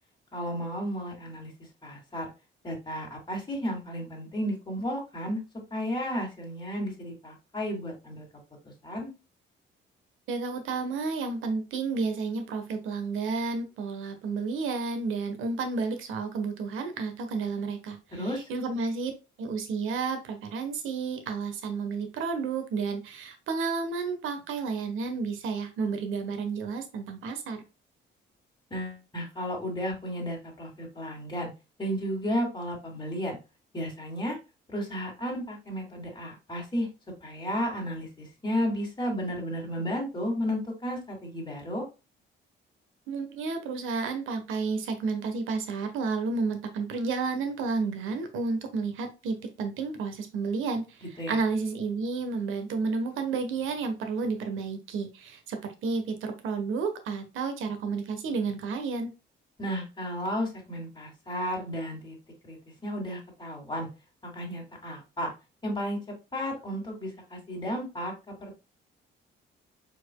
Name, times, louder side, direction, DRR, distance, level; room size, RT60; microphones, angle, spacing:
voice 1, 0.3-1.5 1.8-2.3 2.6-5.4 5.7-8.2 8.8-9.1 18.1-18.4 28.7-31.5 31.8-33.4 33.7-34.4 34.7-36.9 37.2-41.8 51.2-51.4 59.6-62.2 62.4-62.6 62.8-63.9 64.2-65.3 65.6-68.1 68.4-68.5, equal, 20° left, -1 dB, 2.6 m, -33 dB
voice 2, 10.3-19.1 19.4-27.6 43.1-51.0 51.3-59.1, right 4 dB, 85° right, 7 dB, 1.2 m, -31 dB
4.8 x 4.4 x 2.3 m, 0.28 s
cardioid pair, 90°, 20 cm